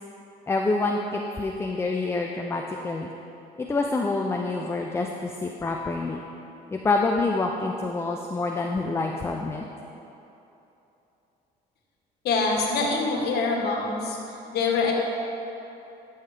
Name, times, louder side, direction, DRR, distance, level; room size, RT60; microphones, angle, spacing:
voice 1, 0.5-3.1 3.6-6.2 6.7-9.6, left 3 dB, 15° left, 1 dB, 0.4 m, -27 dB
voice 2, 12.2-14.2 14.5-14.9, left 4 dB, 70° left, -1 dB, 1.5 m, -24 dB
14.0 x 5.6 x 3.4 m, 2.9 s
cardioid pair, 110°, 17 cm